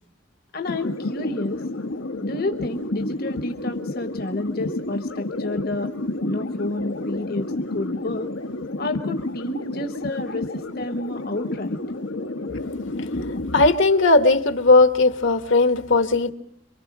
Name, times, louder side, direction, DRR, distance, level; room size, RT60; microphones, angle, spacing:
voice 1, 0.5-1.6 2.2-5.9 6.2-8.3 8.8-11.8, left 2 dB, 50° left, 7 dB, 1.2 m, -30 dB
sound 1, 0.6-13.7, left 2 dB, 85° left, 1.4 m, -30 dB
voice 2, 13.5-16.3, left 3 dB, 70° left, 10 dB, 1.6 m, -17 dB
27.0 x 24.0 x 6.2 m, 0.67 s
head